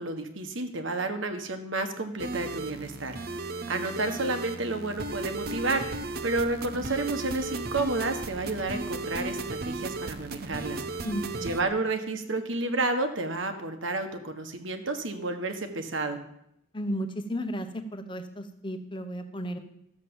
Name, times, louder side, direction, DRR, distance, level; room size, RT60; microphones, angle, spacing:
voice 1, 0.0-3.1 3.7-5.8 6.2-10.8 11.4-16.2, right 2 dB, 70° right, 7 dB, 1.4 m, -31 dB
sound 1, 2.2-11.6, right 3 dB, 50° right, 0.8 m, -35 dB
voice 2, 11.0-11.6 16.7-19.6, equal, 25° left, 7 dB, 1.0 m, -34 dB
13.5 x 7.5 x 7.1 m, 0.77 s
head